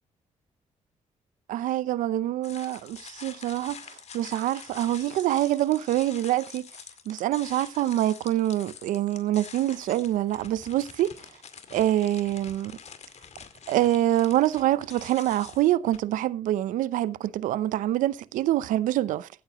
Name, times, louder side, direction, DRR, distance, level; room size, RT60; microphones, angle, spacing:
voice 1, 1.5-6.6 7.1-11.1 11.7-12.7 13.7-19.3, right 13 dB, 85° right, 0.7 m, -25 dB
sound 1, 2.4-16.0, left 6 dB, 55° left, 2.2 m, -46 dB
15.5 x 8.9 x 3.0 m
cardioid pair, 70°, 13 cm